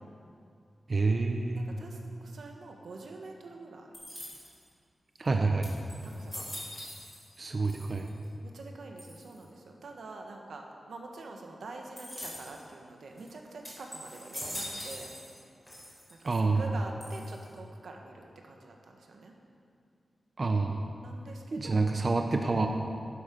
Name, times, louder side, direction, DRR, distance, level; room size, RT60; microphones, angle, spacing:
voice 1, 0.9-1.8 5.2-5.7 7.4-8.1 16.3-16.6 20.4-20.9 21.5-22.7, right 3 dB, 35° right, 4 dB, 0.6 m, -28 dB
voice 2, 1.5-3.9 6.0-6.5 8.4-15.1 16.1-19.3 21.0-21.8, right 3 dB, 85° right, 1 dB, 1.4 m, -46 dB
sound 1, 3.9-4.7 5.3-5.4 5.6-7.4 7.6-8.3 9.0-9.4 12.0-12.6 13.2-13.3 13.6-15.4 15.7-16.3 17.0-17.6, equal, 10° left, 3.4 m, -43 dB
12.0 x 10.5 x 5.3 m, 2.4 s
wide cardioid pair, 170°, 0 cm